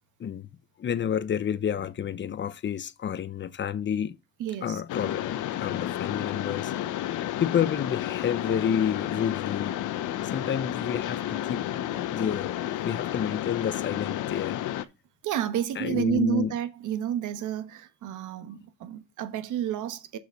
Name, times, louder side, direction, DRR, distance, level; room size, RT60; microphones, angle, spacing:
voice 1, 0.8-4.2 4.6-6.7 7.4-9.8 10.2-11.6 12.1-12.6 12.8-14.6 15.8-16.5, left 8 dB, 40° left, 0.7 m, -29 dB
voice 2, 4.4-4.8 15.2-20.2, right 10 dB, 85° right, 1.1 m, -30 dB
Mechanisms, 4.9-14.9, left 12 dB, 80° left, 0.7 m, -31 dB
6.7 x 4.9 x 5.1 m
cardioid pair, 90°, 30 cm